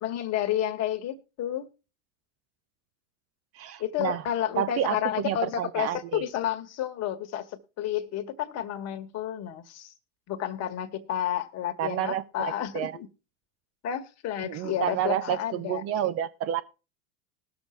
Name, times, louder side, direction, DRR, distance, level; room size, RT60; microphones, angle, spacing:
voice 1, 0.0-1.7 3.8-7.5 7.8-9.9 10.3-13.1 13.8-15.8, left 11 dB, 45° left, 1.4 m, -31 dB
voice 2, 3.5-4.2 4.6-5.0 5.2-6.2 11.8-12.9 14.4-16.6, right 11 dB, 40° right, 0.7 m, -29 dB
20.0 x 6.9 x 3.1 m
hypercardioid pair, 95°, 37 cm